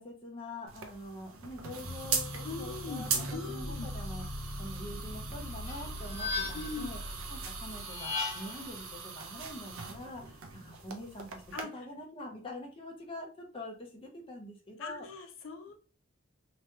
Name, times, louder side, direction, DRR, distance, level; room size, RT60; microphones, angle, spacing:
voice 1, 0.0-4.2 4.6-7.0 7.3-11.4 11.7-15.1, left 1 dB, 25° left, 1 dB, 0.6 m, -45 dB
sound 1, 0.7-11.6, right 5 dB, 85° right, 0.5 m, -40 dB
sound 2, 1.8-8.9, left 1 dB, 5° right, 1.0 m, -42 dB
voice 2, 2.4-3.9 6.5-6.9 11.5-11.7 14.8-15.7, left 4 dB, 65° left, 5 dB, 0.4 m, -41 dB
sound 3, 5.6-6.9 7.8-8.7, left 4 dB, 45° left, 1.3 m, -36 dB
2.9 x 2.2 x 2.8 m, 0.38 s
head